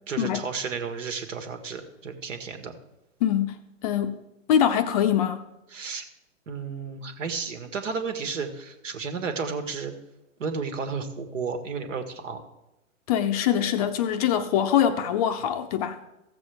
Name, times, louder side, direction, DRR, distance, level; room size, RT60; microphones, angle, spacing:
voice 1, 0.1-2.7 5.7-6.0 6.5-9.9 10.4-12.4, right 5 dB, 70° right, 1.6 m, -32 dB
voice 2, 3.2-3.6 3.8-4.2 4.5-5.4 13.1-16.0, left 9 dB, 30° left, 0.5 m, -23 dB
15.0 x 7.1 x 3.4 m
hypercardioid pair, 125°, 39 cm